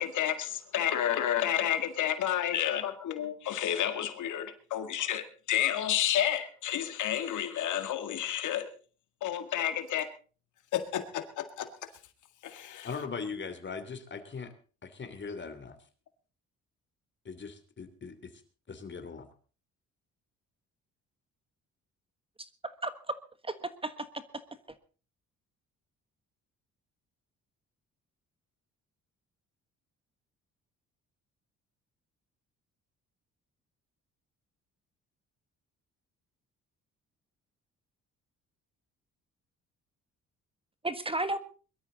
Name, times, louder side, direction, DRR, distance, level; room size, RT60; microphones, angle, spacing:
voice 1, 0.0-8.7 9.2-10.1 10.7-11.7 12.4-12.9, left 11 dB, 80° left, 9 dB, 1.9 m, -30 dB
voice 2, 12.8-14.5 14.8-15.8 17.2-18.3 18.7-19.2, left 5 dB, 40° left, 8 dB, 3.0 m, -40 dB
voice 3, 22.4-23.2 23.4-24.2 40.8-41.4, right 2 dB, 20° right, 11 dB, 1.4 m, -34 dB
22.0 x 13.0 x 4.0 m, 0.38 s
cardioid pair, 90°, 30 cm